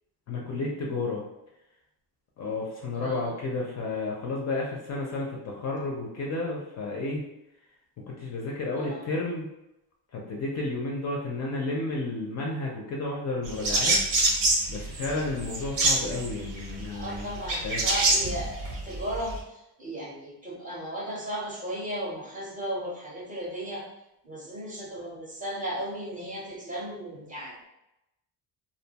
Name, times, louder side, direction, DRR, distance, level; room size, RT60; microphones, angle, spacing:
voice 1, 0.3-1.2 2.4-7.2 8.1-9.5 10.1-14.0 14.7-17.8, left 2 dB, 40° left, -2 dB, 0.4 m, -32 dB
voice 2, 3.0-3.3 8.7-9.0 16.9-23.8 24.2-27.7, right 1 dB, 20° right, -5 dB, 0.6 m, -35 dB
sound 1, 13.4-19.4, right 2 dB, 85° right, 0.9 m, -26 dB
2.5 x 2.2 x 2.7 m, 0.91 s
cardioid pair, 140°, 44 cm